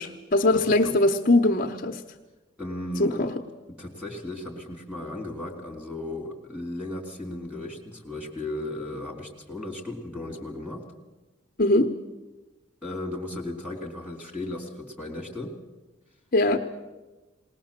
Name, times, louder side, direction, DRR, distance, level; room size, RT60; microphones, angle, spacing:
voice 1, 0.0-2.0 3.0-3.3 11.6-11.9 16.3-16.6, left 2 dB, 45° left, 4 dB, 0.9 m, -21 dB
voice 2, 2.6-3.2 3.7-10.9 12.8-15.6, left 1 dB, 5° right, 2 dB, 3.2 m, -35 dB
20.0 x 19.5 x 7.4 m, 1.1 s
head